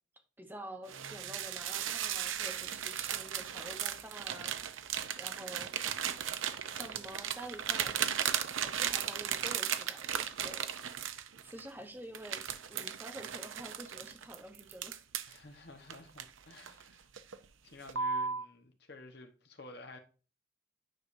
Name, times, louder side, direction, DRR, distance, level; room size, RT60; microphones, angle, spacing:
voice 1, 0.4-4.8 5.2-5.7 6.7-8.0 8.6-10.7 11.4-12.4 12.7-15.0, right 1 dB, 10° right, 0.9 m, -48 dB
sound 1, 0.9-11.7 12.1-15.4 15.9-16.8 17.2-17.4 17.9-18.5, right 8 dB, 85° right, 0.6 m, -36 dB
voice 2, 15.3-17.1 17.6-20.0, left 2 dB, 55° left, 1.2 m, -52 dB
9.4 x 5.0 x 2.6 m
head